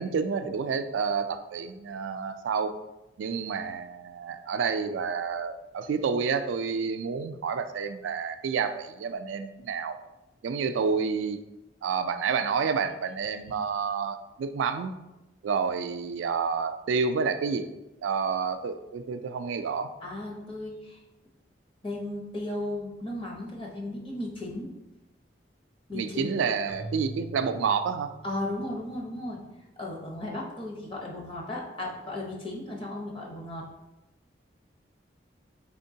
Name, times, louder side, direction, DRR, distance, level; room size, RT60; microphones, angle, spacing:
voice 1, 0.0-2.7 3.2-10.0 10.4-11.4 11.8-14.9 15.4-17.7 18.0-19.9 25.9-28.1, right 5 dB, 90° right, 9 dB, 0.3 m, -29 dB
voice 2, 20.0-21.0 21.8-24.7 25.9-26.3 28.2-29.4 29.8-33.6, left 1 dB, 30° left, -2 dB, 0.8 m, -35 dB
Keyboard (musical), 26.7-28.9, right 3 dB, 10° right, 0.4 m, -42 dB
4.4 x 3.6 x 2.7 m, 1.0 s
head